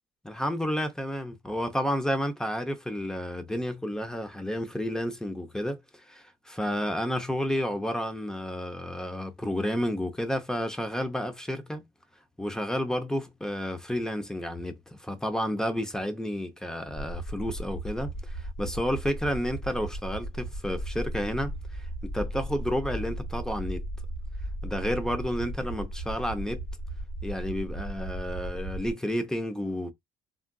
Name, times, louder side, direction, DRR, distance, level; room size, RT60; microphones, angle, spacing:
voice 1, 0.2-11.8 12.4-23.8 24.6-26.6 27.2-29.9, equal, 5° left, 0.6 m, -31 dB
sound 1, 17.0-28.9, right 1 dB, 35° left, 1.5 m, -36 dB
3.7 x 2.3 x 2.2 m
cardioid pair, 110°, 17 cm